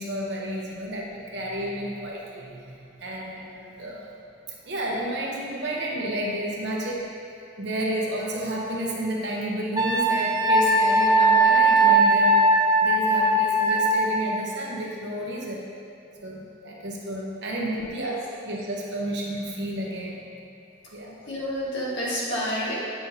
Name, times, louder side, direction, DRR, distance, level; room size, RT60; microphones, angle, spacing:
voice 1, 0.0-4.1 4.6-7.1 7.6-12.4 12.8-15.7 16.2-18.2 18.4-20.2 20.9-21.2, right 1 dB, 60° right, -4 dB, 0.9 m, -31 dB
Wind instrument woodwind instrument, 9.8-14.0, right 2 dB, 20° right, 0.5 m, -19 dB
voice 2, 17.6-18.1 21.3-22.7, equal, 70° left, -7 dB, 1.5 m, -29 dB
8.3 x 5.6 x 2.8 m, 2.4 s
head